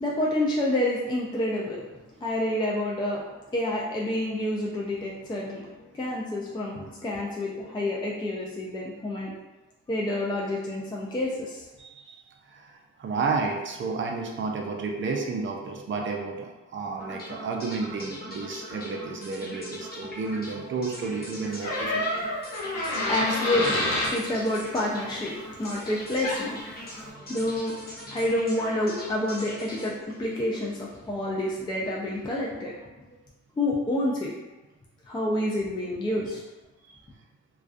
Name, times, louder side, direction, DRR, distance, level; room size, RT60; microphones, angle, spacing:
voice 1, 0.0-1.9 2.2-9.3 9.9-11.7 22.8-32.9 33.6-34.3 35.1-36.4, left 1 dB, 15° left, -4 dB, 0.4 m, -29 dB
voice 2, 11.8-12.2 12.5-22.3 27.1-27.2 36.9-37.0, right 4 dB, 40° right, 2 dB, 0.5 m, -32 dB
sound 1, 17.0-31.1, equal, 30° left, 0.8 m, -42 dB
Door, 21.6-24.2 25.9-26.0 26.2-26.6, left 1 dB, 65° left, 0.9 m, -28 dB
2.3 x 2.3 x 2.4 m, 1.1 s
cardioid pair, 90°, 30 cm